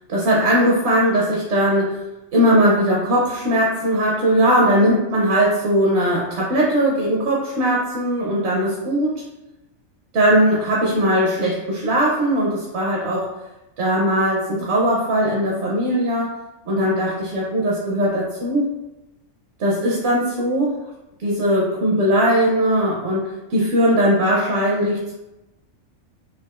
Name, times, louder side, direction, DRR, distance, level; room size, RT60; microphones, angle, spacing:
voice 1, 0.1-2.0 2.3-9.1 10.1-13.3 13.8-16.3 16.7-18.7 19.6-20.8 21.2-25.1, equal, 60° right, -3 dB, 0.9 m, -19 dB
4.7 x 2.3 x 2.4 m, 0.98 s
omnidirectional pair, 1.4 m